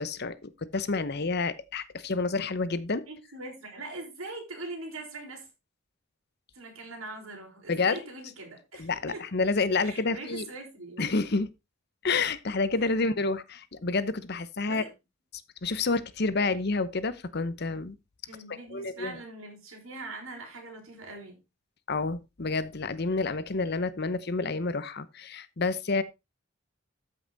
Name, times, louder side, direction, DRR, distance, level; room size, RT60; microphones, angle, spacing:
voice 1, 0.0-3.0 7.7-7.9 8.8-10.5 11.0-11.5 12.0-14.8 15.6-18.0 18.7-19.2 21.9-26.0, left 3 dB, 50° left, 0.9 m, -29 dB
voice 2, 3.0-5.5 6.5-9.2 9.8-11.1 12.9-13.0 14.6-14.9 18.3-21.4, right 2 dB, 80° right, 5.1 m, -42 dB
13.5 x 5.8 x 4.0 m
head